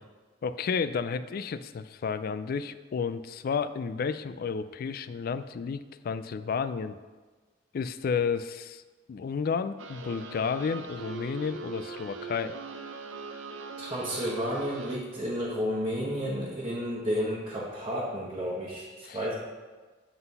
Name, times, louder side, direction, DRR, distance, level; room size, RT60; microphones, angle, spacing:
voice 1, 0.4-7.0 7.7-8.8 9.1-12.5 19.1-19.2, left 5 dB, 50° left, 12 dB, 0.3 m, -31 dB
sound 1, 9.8-15.0, right 4 dB, 90° right, 0.6 m, -41 dB
voice 2, 13.8-19.3, equal, 25° right, -8 dB, 1.2 m, -31 dB
7.7 x 4.0 x 5.5 m, 1.3 s
head